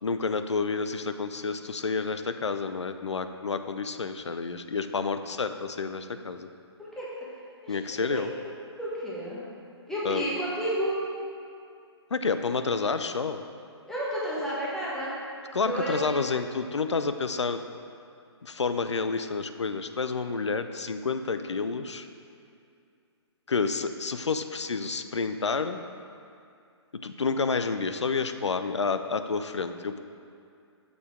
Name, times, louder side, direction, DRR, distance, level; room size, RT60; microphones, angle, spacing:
voice 1, 0.0-6.5 7.7-8.3 10.0-10.2 12.1-13.4 15.5-17.6 18.4-22.1 23.5-25.8 26.9-30.0, left 4 dB, 80° left, 9 dB, 0.4 m, -29 dB
voice 2, 8.8-9.4 9.9-11.0 13.9-15.1 15.6-16.0, right 1 dB, 5° left, -8 dB, 1.2 m, -31 dB
6.6 x 5.4 x 3.5 m, 2.4 s
figure-of-eight pair, 130°, 15 cm